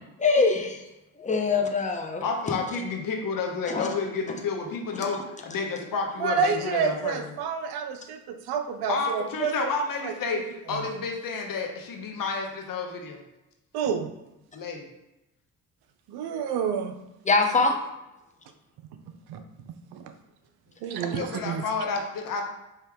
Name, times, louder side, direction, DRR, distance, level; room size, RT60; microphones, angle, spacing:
voice 1, 0.2-0.8 1.2-2.2 3.7-3.9 17.2-17.8, left 4 dB, 20° left, 3 dB, 0.7 m, -23 dB
voice 2, 2.2-7.3 8.9-13.2 14.5-14.9 21.0-22.4, left 4 dB, 60° left, 2 dB, 1.0 m, -30 dB
voice 3, 6.2-9.7 10.0-10.1 10.7-10.8 13.7-14.1 16.1-16.9 19.3-19.4 19.9-20.0 20.8-21.6, right 6 dB, 80° right, 8 dB, 0.6 m, -28 dB
4.8 x 2.9 x 3.5 m, 0.91 s
cardioid pair, 85°, 37 cm